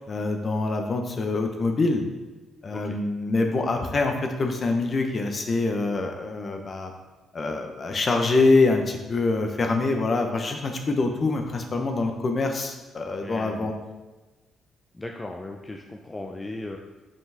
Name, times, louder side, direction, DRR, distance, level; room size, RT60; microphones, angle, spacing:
voice 1, 0.0-2.0 2.6-6.9 7.3-13.7, left 3 dB, 40° left, 4 dB, 0.8 m, -25 dB
voice 2, 13.2-13.7 14.9-16.8, left 2 dB, 20° left, 1 dB, 0.5 m, -37 dB
5.7 x 5.3 x 3.4 m, 1.2 s
cardioid pair, 90°, 0 cm